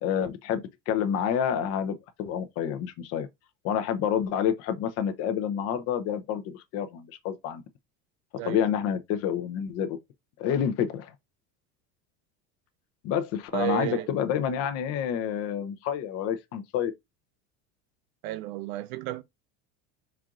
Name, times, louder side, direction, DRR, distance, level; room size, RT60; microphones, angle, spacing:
voice 1, 0.0-3.3 3.6-7.6 8.4-10.0 10.4-11.1 13.0-16.9, left 8 dB, 45° left, 0.7 m, -28 dB
voice 2, 13.5-14.1 18.2-19.2, right 16 dB, 70° right, 0.6 m, -32 dB
4.5 x 2.5 x 3.7 m
cardioid pair, 155°, 33 cm